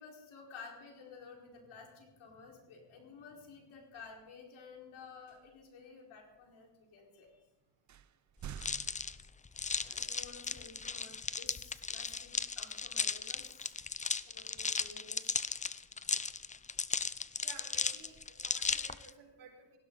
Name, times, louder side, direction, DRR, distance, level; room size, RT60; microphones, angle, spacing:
voice 1, 0.0-7.4 9.8-13.8 14.2-15.4, left 5 dB, 75° left, 0 dB, 4.8 m, -53 dB
sound 1, 3.9-4.2 5.3-5.7 6.3-6.4 7.3-7.4 7.9-9.8, right 9 dB, 40° right, 0.6 m, -49 dB
sound 2, 8.6-19.1, left 5 dB, 15° left, 0.5 m, -36 dB
voice 2, 17.4-19.8, right 6 dB, 80° right, 1 dB, 5.0 m, -54 dB
19.0 x 16.0 x 4.0 m, 0.98 s
cardioid pair, 100°, 48 cm